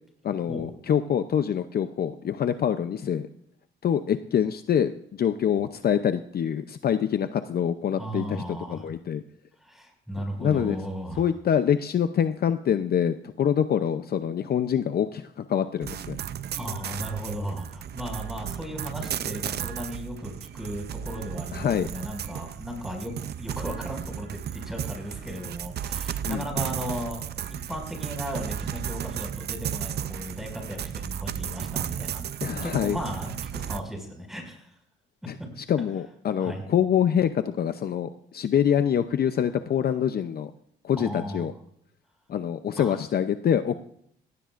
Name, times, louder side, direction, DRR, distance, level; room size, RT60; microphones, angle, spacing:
voice 1, 0.2-3.3 3.8-9.2 10.4-10.8 11.2-16.2 21.5-21.9 26.3-26.4 32.4-33.0 35.3-40.5 40.8-41.5 42.3-43.7, left 8 dB, 50° left, 10 dB, 0.6 m, -25 dB
voice 2, 8.0-8.9 9.6-11.3 16.6-27.2 27.5-32.2 32.6-34.7 36.4-36.6 41.0-41.5 42.8-43.0, equal, ahead, 2 dB, 5.7 m, -36 dB
sound 1, 15.8-33.8, right 9 dB, 55° right, 0.6 m, -34 dB
17.5 x 17.0 x 2.5 m, 0.70 s
cardioid pair, 90°, 20 cm